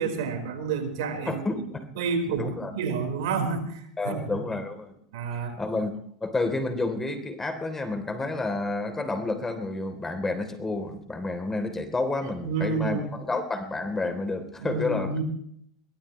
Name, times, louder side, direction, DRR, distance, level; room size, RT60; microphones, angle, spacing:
voice 1, 0.0-1.4 2.0-4.4 5.1-5.6 12.4-13.1 14.6-15.2, right 5 dB, 75° right, 6 dB, 4.7 m, -29 dB
voice 2, 1.3-1.9 2.4-2.7 4.0-4.9 5.3-15.2, left 2 dB, 15° left, 8 dB, 3.4 m, -30 dB
23.5 x 18.0 x 3.2 m, 0.67 s
hypercardioid pair, 100°, 2 cm